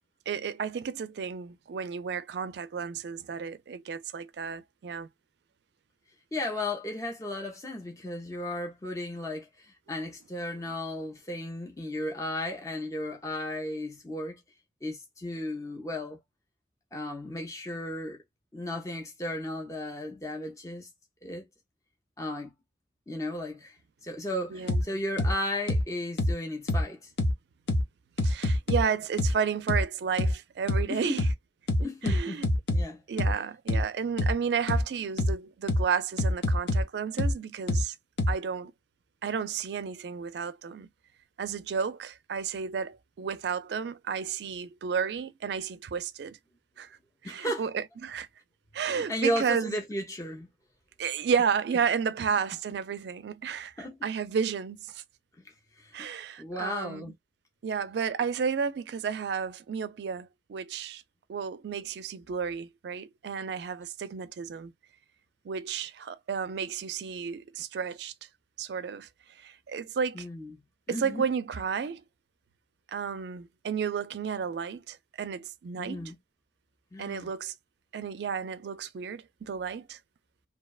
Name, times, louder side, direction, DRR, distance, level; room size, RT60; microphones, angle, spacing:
voice 1, 0.3-5.1 24.5-24.8 28.2-31.3 32.0-32.5 33.1-37.9 38.3-38.7 39.2-40.9 41.4-46.4 46.8-47.0 47.2-48.3 48.7-49.8 51.0-55.0 55.9-57.1 57.6-61.0 61.3-64.7 65.4-68.1 68.6-69.1 69.4-70.3 70.9-72.0 72.9-76.1 77.0-77.5 77.9-80.0, right 6 dB, 65° right, 0.3 m, -32 dB
voice 2, 6.3-14.4 14.8-16.2 16.9-18.2 18.5-20.9 21.2-21.4 22.2-22.5 23.1-23.8 24.0-27.1 30.9-31.1 31.8-32.4 32.7-33.0 47.2-47.7 48.8-50.5 53.8-54.0 55.4-56.1 56.4-57.1 70.1-70.5 70.9-71.2 75.8-76.2 76.9-77.3, left 1 dB, 15° left, 0.4 m, -35 dB
sound 1, 24.7-24.8 25.2-25.3 25.7-25.8 26.2-26.3 26.7-26.8 27.2-27.3 27.7-27.8 28.2-28.8 29.2-29.3 29.7-29.8 30.2-30.3 30.7-30.8 31.2-31.3 31.7-32.8 33.2-33.3 33.7-33.8 34.2-34.3 34.7-34.8 35.2-35.3 35.7-35.8 36.2-36.8 37.2-37.3 37.7-37.8 38.2-38.3, left 1 dB, 75° left, 0.6 m, -25 dB
2.6 x 2.1 x 2.2 m
head